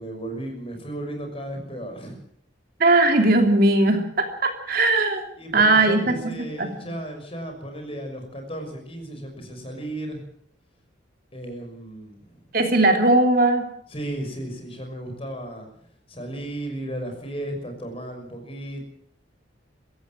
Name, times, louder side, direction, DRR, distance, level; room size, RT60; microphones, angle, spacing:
voice 1, 0.0-2.1 5.4-10.2 11.3-12.4 13.9-15.7 16.1-18.8, right 1 dB, 30° left, 4 dB, 6.1 m, -34 dB
voice 2, 2.8-5.3 5.5-6.7 12.5-13.7, right 2 dB, 50° right, 5 dB, 3.0 m, -19 dB
23.5 x 16.0 x 7.6 m, 0.63 s
head